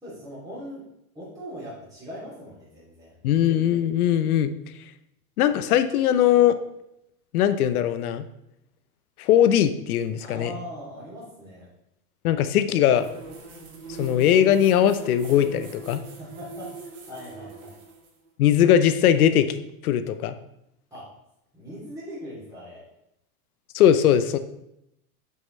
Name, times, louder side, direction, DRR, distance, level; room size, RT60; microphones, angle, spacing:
voice 1, 0.0-0.9 1.1-3.1 10.2-11.7 16.2-17.7 20.9-21.1 21.5-22.8, equal, 10° right, -8 dB, 2.7 m, -40 dB
voice 2, 3.2-4.5 5.4-6.6 7.3-8.2 9.2-10.5 12.2-13.1 14.0-16.0 18.4-20.3 23.7-24.4, left 10 dB, 85° left, 11 dB, 0.8 m, -20 dB
sound 1, 12.9-18.1, right 3 dB, 80° right, 2.2 m, -41 dB
7.6 x 5.6 x 3.2 m, 0.82 s
supercardioid pair, 125°, 43 cm